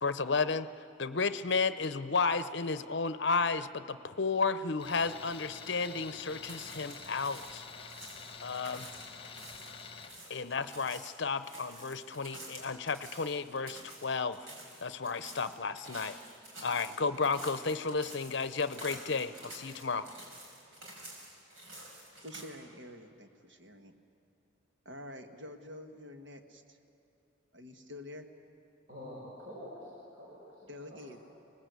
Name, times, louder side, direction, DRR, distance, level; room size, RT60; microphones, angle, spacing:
voice 1, 0.0-7.6 8.4-8.9 10.3-14.5 14.8-16.2 16.6-20.1, left 4 dB, 55° left, 13 dB, 0.7 m, -33 dB
Tools, 4.8-10.2, left 5 dB, 25° left, 1.4 m, -47 dB
sound 1, 6.3-22.4, right 1 dB, 80° right, 5.6 m, -49 dB
voice 2, 22.2-23.9 24.8-26.8 27.5-28.3 30.7-31.2, left 1 dB, 65° right, 6 dB, 1.6 m, -47 dB
voice 3, 28.9-31.1, left 1 dB, 45° right, -6 dB, 5.4 m, -47 dB
26.5 x 19.5 x 8.2 m, 2.6 s
head